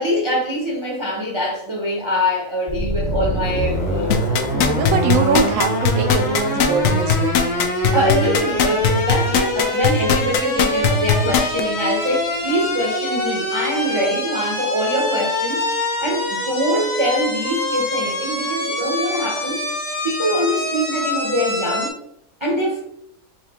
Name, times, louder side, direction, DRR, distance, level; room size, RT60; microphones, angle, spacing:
voice 1, 0.0-4.2 4.4-4.8 7.9-19.6 20.0-22.0 22.4-22.8, equal, 30° right, -2 dB, 0.5 m, -23 dB
sound 1, 2.7-21.9, left 1 dB, 35° left, 0.8 m, -24 dB
sound 2, 4.1-11.6 12.1-12.2, left 8 dB, 90° left, 1.1 m, -18 dB
voice 2, 4.5-7.4, right 5 dB, 70° right, 6 dB, 1.0 m, -22 dB
4.3 x 2.8 x 3.5 m, 0.75 s
omnidirectional pair, 1.6 m